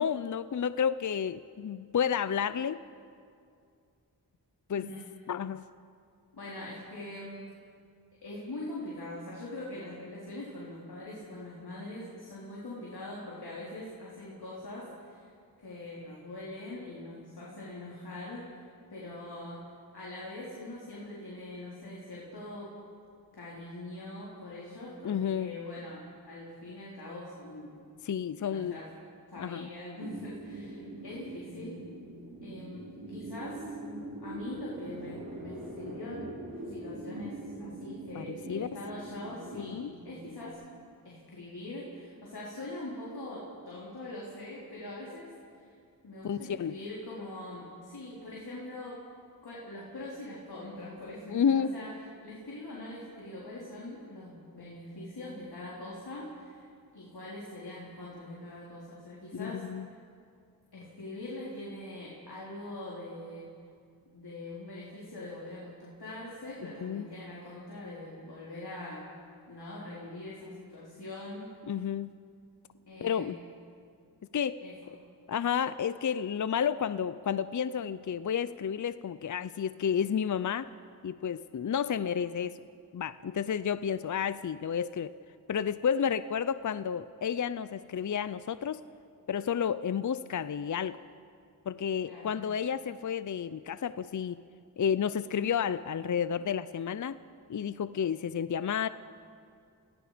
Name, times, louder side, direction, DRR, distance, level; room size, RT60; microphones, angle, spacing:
voice 1, 0.0-2.8 4.7-4.9 5.3-5.6 25.0-25.6 28.0-28.8 29.4-29.7 38.1-38.7 39.5-39.9 46.2-46.7 51.3-51.7 59.4-59.9 66.8-67.1 71.7-72.2 73.0-73.4 74.3-74.6 75.3-80.7 81.0-82.6 82.9-85.1 85.5-88.8 89.3-91.0 91.7-94.4 94.8-97.2 97.5-98.9, left 8 dB, 50° left, 14 dB, 0.6 m, -31 dB
voice 2, 4.7-5.1 6.3-7.4 8.2-15.3 15.6-19.6 19.9-22.7 23.3-27.8 28.4-28.9 29.3-31.8 32.4-33.6 34.2-36.2 36.6-39.8 40.0-40.6 41.0-45.3 45.5-45.7 46.0-49.0 49.4-51.9 52.2-59.6 60.7-63.5 64.1-69.0 69.5-71.5 72.9-73.4 74.6-74.7 92.0-92.3, left 1 dB, 70° left, -6 dB, 4.3 m, -43 dB
sound 1, 30.0-40.5, right 1 dB, 55° right, 4.9 m, -43 dB
28.5 x 18.0 x 5.2 m, 2.3 s
cardioid pair, 50°, 40 cm